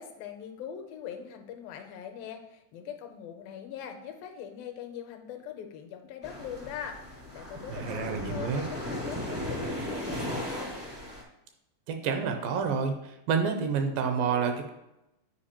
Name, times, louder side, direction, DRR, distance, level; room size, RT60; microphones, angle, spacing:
voice 1, 0.0-10.8, left 8 dB, 80° left, 5 dB, 2.3 m, -42 dB
sound 1, 6.2-11.2, left 1 dB, 30° right, 0.4 m, -36 dB
voice 2, 7.7-8.6 11.9-12.9 13.3-14.7, right 6 dB, 80° right, 5 dB, 2.3 m, -28 dB
10.0 x 4.7 x 2.9 m, 0.90 s
omnidirectional pair, 4.3 m